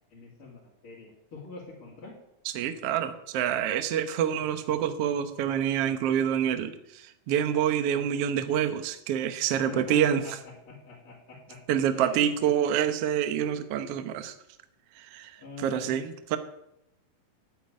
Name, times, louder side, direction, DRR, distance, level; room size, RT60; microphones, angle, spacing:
voice 1, 0.1-2.1 9.5-10.3 10.7-11.6 11.9-12.6 15.3-16.1, left 4 dB, 40° left, -5 dB, 3.0 m, -44 dB
voice 2, 2.4-10.2 11.7-14.3 14.9-16.4, right 9 dB, 75° right, 9 dB, 1.4 m, -27 dB
9.8 x 8.6 x 9.5 m, 0.83 s
omnidirectional pair, 4.2 m